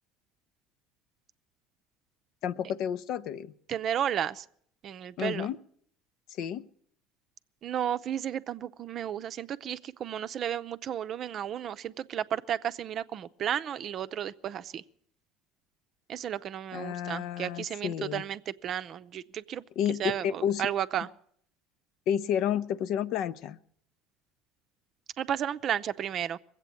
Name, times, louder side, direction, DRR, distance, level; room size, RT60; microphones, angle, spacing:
voice 1, 2.4-3.5 5.2-5.6 6.3-6.7 16.7-18.2 19.8-20.7 22.1-23.6, left 9 dB, 65° left, 14 dB, 0.6 m, -31 dB
voice 2, 3.7-4.5 4.8-5.5 7.6-14.8 16.1-19.6 20.0-21.1 25.2-26.4, right 10 dB, 50° right, 12 dB, 0.6 m, -33 dB
21.0 x 8.2 x 8.4 m, 0.66 s
supercardioid pair, 85°, 0 cm